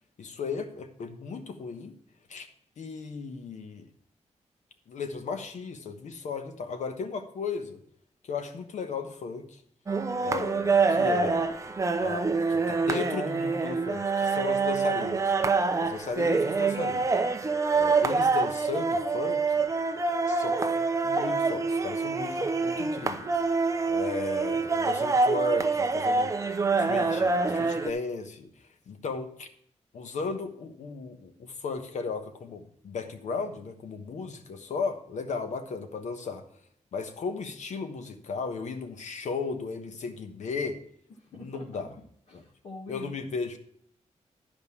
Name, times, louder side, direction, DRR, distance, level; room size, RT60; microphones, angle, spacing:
voice 1, 0.2-1.9 2.3-2.5 2.8-3.9 4.9-7.8 8.2-9.6 10.2-11.4 12.0-15.3 15.8-17.1 17.8-19.7 20.3-20.7 21.0-23.4 23.9-26.3 26.8-28.5 28.9-29.5 29.9-36.4 36.9-40.8 41.3-41.9 42.3-42.4 42.9-43.6, left 4 dB, 75° left, 8 dB, 1.2 m, -35 dB
sound 1, 9.9-27.9, right 4 dB, 25° right, 0.6 m, -26 dB
voice 2, 41.2-41.8 42.3-43.2, left 2 dB, 55° left, 0 dB, 1.6 m, -45 dB
10.5 x 5.2 x 7.1 m, 0.65 s
wide cardioid pair, 140°, 12 cm